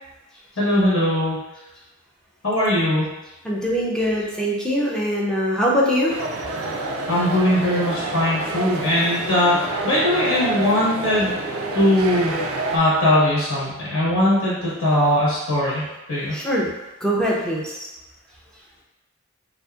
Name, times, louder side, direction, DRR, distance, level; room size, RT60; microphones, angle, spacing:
voice 1, 0.6-1.4 2.4-3.1 7.1-9.6 9.8-11.3 11.7-12.3 12.7-16.3, left 1 dB, 70° left, -8 dB, 1.1 m, -20 dB
voice 2, 3.4-6.1 16.3-16.7 17.0-17.9, equal, 5° left, -4 dB, 0.4 m, -22 dB
sound 1, 6.1-12.8, right 2 dB, 90° right, 0.4 m, -28 dB
2.6 x 2.4 x 2.3 m, 1.0 s
head